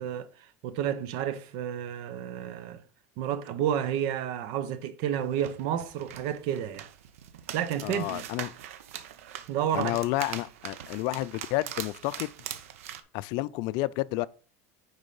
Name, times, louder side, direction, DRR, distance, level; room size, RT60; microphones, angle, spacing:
voice 1, 0.0-2.8 3.2-6.9 7.5-8.2 9.5-10.0, right 9 dB, 65° right, 1.0 m, -31 dB
sound 1, 5.1-13.0, right 10 dB, 90° right, 0.8 m, -42 dB
voice 2, 7.8-8.5 9.7-12.3 13.1-14.3, left 18 dB, 65° left, 0.4 m, -30 dB
9.8 x 4.0 x 5.5 m
supercardioid pair, 115°, 7 cm